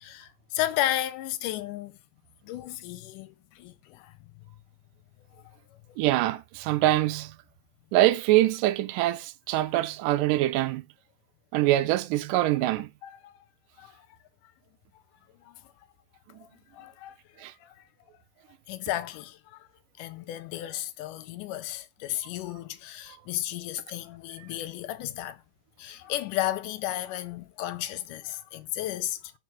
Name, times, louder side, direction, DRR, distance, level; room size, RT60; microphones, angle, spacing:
voice 1, 0.0-2.0 2.4-4.1 13.0-13.3 13.8-14.1 15.4-15.7 16.4-16.5 16.7-17.9 18.7-19.7 20.0-25.4 25.8-29.3, left 14 dB, 80° left, 2.1 m, -34 dB
voice 2, 6.0-7.4 7.9-10.9 11.5-12.9 17.4-17.5, right 15 dB, 85° right, 2.2 m, -24 dB
4.7 x 4.5 x 6.0 m
omnidirectional pair, 3.8 m